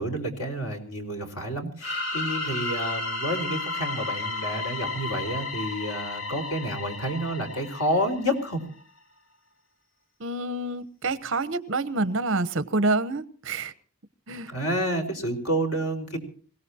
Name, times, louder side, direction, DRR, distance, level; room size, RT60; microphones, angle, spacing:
voice 1, 0.0-8.6 14.5-16.2, equal, 85° left, 4 dB, 4.7 m, -29 dB
sound 1, 1.8-8.5, left 3 dB, 65° left, 2.3 m, -33 dB
voice 2, 10.2-13.7 14.3-14.5, right 2 dB, 55° right, 14 dB, 1.0 m, -27 dB
26.0 x 17.5 x 2.9 m, 0.43 s
head